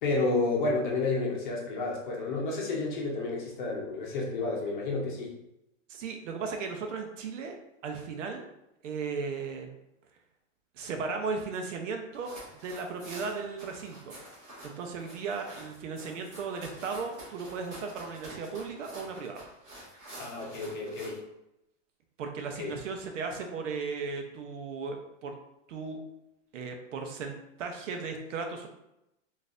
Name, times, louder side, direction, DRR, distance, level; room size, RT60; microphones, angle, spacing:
voice 1, 0.0-5.3 20.2-21.2 22.6-22.7, left 3 dB, 40° left, -2 dB, 0.8 m, -30 dB
voice 2, 5.9-7.6 7.8-8.4 8.8-9.7 10.7-14.1 14.6-19.4 22.2-25.3 25.7-26.0 26.5-28.7, right 4 dB, 70° right, 4 dB, 0.7 m, -36 dB
sound 1, 12.1-21.2, right 1 dB, 20° right, 1.5 m, -48 dB
3.9 x 2.6 x 2.5 m, 0.86 s
supercardioid pair, 175°, 38 cm